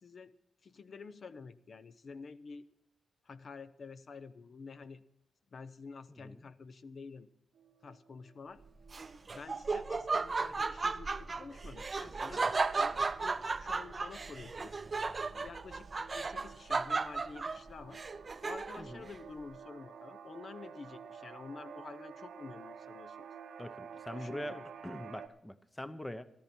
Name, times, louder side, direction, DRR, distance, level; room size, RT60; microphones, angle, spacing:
voice 1, 0.6-2.7 3.2-5.0 5.5-7.3 7.8-8.6 9.3-14.8 15.3-18.0 18.4-23.3 24.1-24.7, left 4 dB, 50° left, 13 dB, 0.6 m, -49 dB
voice 2, 6.1-6.4 18.8-19.1 23.6-24.6 24.8-26.2, left 1 dB, 10° left, 13 dB, 0.7 m, -43 dB
sound 1, 7.5-25.3, right 7 dB, 85° right, 0.9 m, -52 dB
Laughter, 8.9-18.9, right 4 dB, 30° right, 0.6 m, -35 dB
14.0 x 13.5 x 4.3 m, 0.83 s
wide cardioid pair, 120°, 0 cm